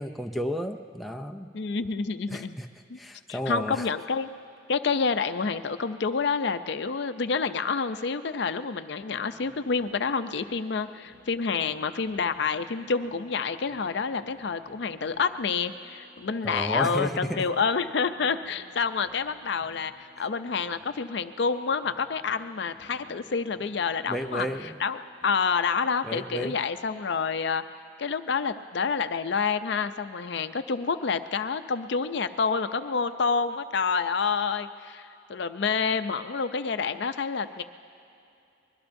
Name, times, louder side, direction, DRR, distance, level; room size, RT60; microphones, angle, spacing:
voice 1, 0.0-1.5 2.3-2.7 3.0-3.9 16.4-17.5 20.2-20.3 24.1-24.8 26.0-26.6, equal, ahead, 6 dB, 0.4 m, -32 dB
voice 2, 1.5-2.6 2.9-3.0 3.3-4.3 4.7-24.5 24.8-25.0 25.2-27.6 28.0-37.6, left 5 dB, 60° left, 10 dB, 0.5 m, -28 dB
sound 1, 9.1-27.2, equal, 35° right, 4.5 m, -57 dB
23.5 x 21.5 x 2.6 m, 2.8 s
head